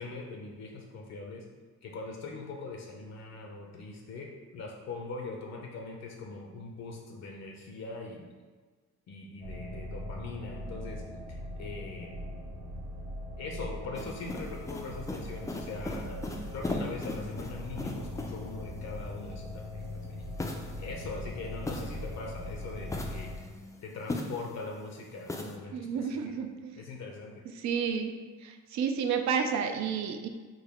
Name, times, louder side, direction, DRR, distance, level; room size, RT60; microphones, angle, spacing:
voice 1, 0.0-1.4 1.8-8.3 9.1-11.0 11.3-12.4 13.4-20.3 20.8-23.5 23.8-26.3 26.8-27.4, left 3 dB, 60° left, 0 dB, 0.6 m, -42 dB
sound 1, 9.4-23.4, left 1 dB, 85° right, 0.8 m, -40 dB
sound 2, 13.9-18.6 20.4-22.3 22.8-24.7 25.3-25.6, left 2 dB, 10° left, 0.3 m, -39 dB
voice 2, 25.7-26.8 27.6-28.1 28.4-30.3, right 6 dB, 65° right, 6 dB, 0.4 m, -31 dB
3.7 x 2.2 x 3.4 m, 1.4 s
cardioid pair, 90°, 30 cm